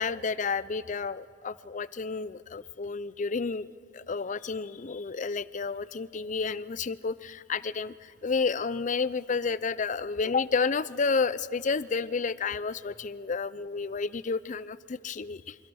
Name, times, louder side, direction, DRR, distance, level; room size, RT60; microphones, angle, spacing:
voice 1, 0.0-3.7 3.9-15.6, left 4 dB, 45° left, 17 dB, 0.5 m, -31 dB
26.5 x 24.5 x 6.4 m, 2.3 s
head